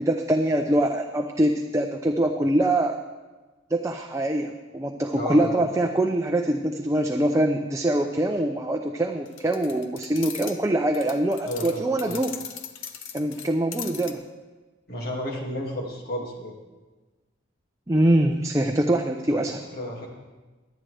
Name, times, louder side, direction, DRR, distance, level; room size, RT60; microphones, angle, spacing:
voice 1, 0.0-3.0 3.7-12.3 13.1-14.2 17.9-19.6, right 1 dB, 15° right, 3 dB, 0.5 m, -24 dB
voice 2, 5.1-5.6 11.4-12.2 14.9-16.5 19.3-20.1, equal, 50° left, -1 dB, 2.3 m, -33 dB
sound 1, 9.3-10.6 10.9-14.1, left 8 dB, 80° left, 0.9 m, -39 dB
23.0 x 8.9 x 3.4 m, 1.3 s
head